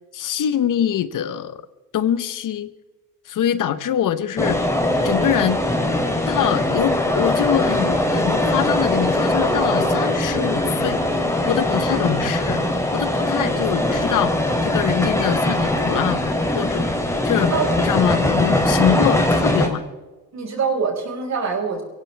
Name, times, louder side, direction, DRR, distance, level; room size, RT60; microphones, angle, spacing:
voice 1, 0.1-1.6 1.9-2.7 3.3-4.6 5.0-5.6 6.3-11.0 11.5-12.7 12.9-16.2 16.5-16.9 17.2-19.8, left 10 dB, 65° left, 14 dB, 1.1 m, -24 dB
sound 1, 4.4-19.7, left 1 dB, 10° left, 3.3 m, -21 dB
voice 2, 20.3-21.8, right 5 dB, 50° right, 1 dB, 5.2 m, -24 dB
24.5 x 16.5 x 3.5 m, 1.2 s
cardioid pair, 85°, 35 cm